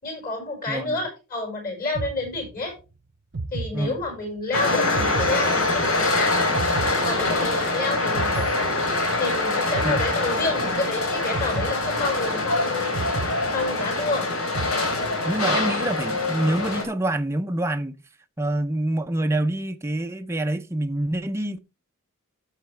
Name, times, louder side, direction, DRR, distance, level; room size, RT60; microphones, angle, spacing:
voice 1, 0.0-2.8 3.5-6.3 7.0-8.5 9.2-13.0 13.5-14.3 15.5-15.6, left 3 dB, 40° left, 5.7 m, -29 dB
voice 2, 0.7-1.0 3.7-4.0 9.8-10.0 15.2-18.0 18.4-21.6, right 1 dB, 10° right, 0.5 m, -26 dB
sound 1, 1.9-2.8 3.3-4.4 4.9-6.1 6.5-7.7 8.1-9.3 9.7-10.8 11.3-12.5 12.9-14.1 14.5-15.4, right 3 dB, 55° right, 0.7 m, -34 dB
sound 2, 4.5-16.8, left 2 dB, 80° left, 3.2 m, -24 dB
15.0 x 6.5 x 3.3 m
head